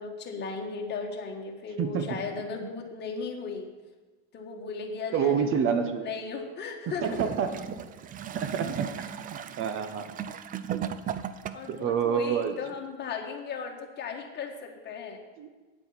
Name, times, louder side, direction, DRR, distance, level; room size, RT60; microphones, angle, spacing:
voice 1, 0.0-3.7 4.3-7.2 11.5-15.2, left 5 dB, 35° left, 2 dB, 1.7 m, -36 dB
voice 2, 5.1-6.0 7.0-7.5 8.3-8.9 9.3-10.1 11.7-12.6 15.4-15.5, right 7 dB, 45° right, 8 dB, 1.2 m, -27 dB
Gurgling / Toilet flush, 7.0-11.8 12.7-12.8, right 9 dB, 30° right, 0.5 m, -36 dB
9.3 x 7.9 x 5.8 m, 1.3 s
cardioid pair, 135°, 29 cm